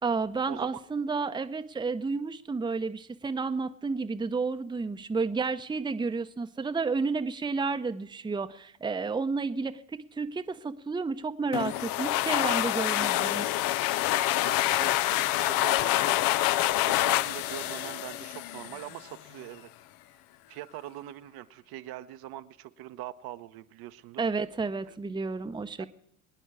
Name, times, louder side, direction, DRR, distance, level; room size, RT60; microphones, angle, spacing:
voice 1, 0.0-13.5 24.2-25.9, right 4 dB, 10° right, 9 dB, 0.8 m, -31 dB
sound 1, 11.5-19.0, left 15 dB, 55° left, 0.6 m, -27 dB
voice 2, 14.4-16.2 16.8-19.7 20.5-24.2 24.8-25.0 25.8-25.9, right 14 dB, 55° right, 10 dB, 0.9 m, -43 dB
23.5 x 9.9 x 4.8 m, 0.74 s
hypercardioid pair, 65°, 43 cm